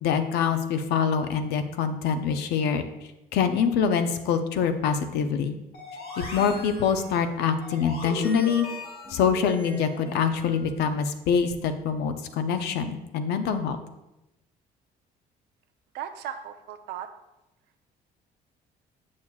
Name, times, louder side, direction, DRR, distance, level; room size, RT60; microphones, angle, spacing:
voice 1, 0.0-2.8 3.3-5.5 6.2-8.7 9.1-13.8, left 6 dB, 80° left, 8 dB, 0.6 m, -25 dB
sound 1, 5.7-10.6, left 2 dB, 60° left, 1.9 m, -39 dB
voice 2, 15.9-17.1, right 9 dB, 80° right, 7 dB, 0.6 m, -36 dB
7.1 x 6.4 x 2.3 m, 0.94 s
cardioid pair, 110°, 17 cm